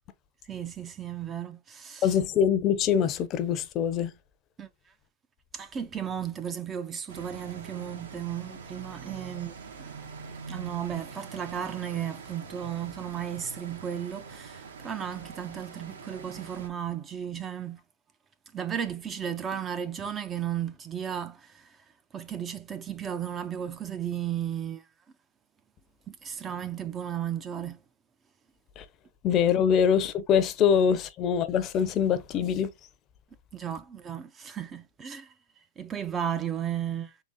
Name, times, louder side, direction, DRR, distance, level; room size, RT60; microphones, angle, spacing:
voice 1, 0.4-2.2 4.6-4.7 5.5-9.9 10.5-17.8 18.5-21.8 22.1-24.9 26.1-27.8 33.5-37.2, right 9 dB, 20° right, 0.4 m, -34 dB
voice 2, 2.0-4.1 28.8-28.9 29.2-32.7, left 8 dB, 30° left, 0.6 m, -24 dB
sound 1, 7.1-16.7, right 5 dB, 80° right, 1.4 m, -44 dB
3.8 x 3.3 x 3.6 m
supercardioid pair, 150°, 0 cm